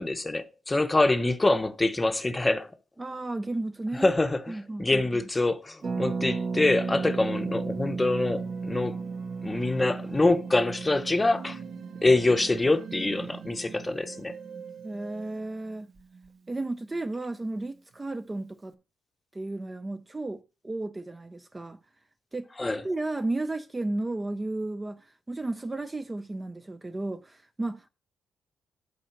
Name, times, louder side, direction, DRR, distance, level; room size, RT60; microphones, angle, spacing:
voice 1, 0.0-2.7 4.0-9.0 9.4-11.6 12.0-14.3 22.6-22.8, left 2 dB, 15° left, 0.8 m, -25 dB
voice 2, 3.0-4.1 4.5-5.3 14.8-15.9 16.5-18.8 19.3-21.8 22.3-22.5 22.8-27.9, right 2 dB, 15° right, 0.4 m, -33 dB
Harp, 5.8-15.4 15.7-15.8 16.0-16.3, right 4 dB, 45° right, 1.0 m, -35 dB
sound 1, 6.7-15.4, right 7 dB, 90° right, 2.1 m, -45 dB
8.7 x 4.1 x 6.9 m
cardioid pair, 115°, 0 cm